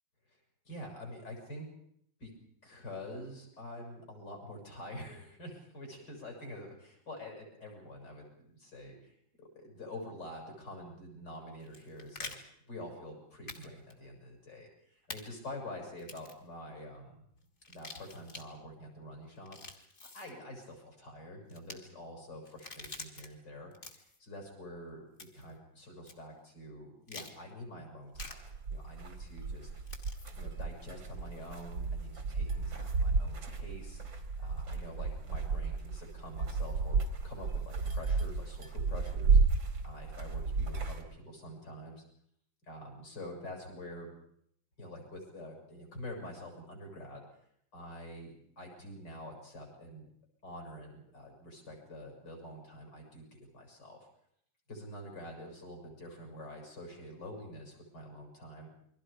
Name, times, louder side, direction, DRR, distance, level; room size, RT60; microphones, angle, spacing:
voice 1, 0.7-1.7 2.2-2.3 2.6-12.3 12.7-17.2 17.7-19.9 20.1-29.7 30.4-34.0 34.4-39.4 39.8-42.0 42.7-44.1 44.8-47.2 47.7-50.1 50.4-54.1 54.7-58.7, left 1 dB, 65° left, 1 dB, 7.8 m, -47 dB
sound 1, 11.6-12.4 13.5-13.6 13.9-14.0 15.1-15.2 16.0-16.4 17.6-18.4 19.4-20.3 21.5-21.8 22.5-23.3 23.7-24.2 25.2-25.5 26.1-26.2 27.1-27.3 28.2-28.3 29.9-30.3, left 3 dB, 35° left, 2.7 m, -46 dB
sound 2, 28.1-41.0, right 4 dB, 80° right, 3.1 m, -32 dB
29.0 x 23.0 x 5.2 m, 0.69 s
omnidirectional pair, 2.1 m